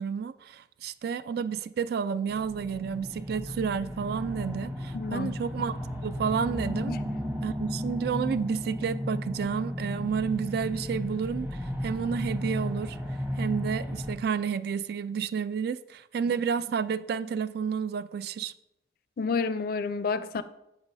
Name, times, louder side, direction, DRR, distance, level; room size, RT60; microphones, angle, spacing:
voice 1, 0.0-5.7 6.0-6.9 7.4-13.0 13.4-18.5, right 6 dB, 60° right, 0.3 m, -31 dB
sound 1, 2.3-14.1, equal, 10° right, 1.0 m, -34 dB
voice 2, 4.9-5.4 6.9-7.2 19.2-20.4, left 4 dB, 55° left, 0.4 m, -30 dB
7.9 x 7.2 x 2.6 m
head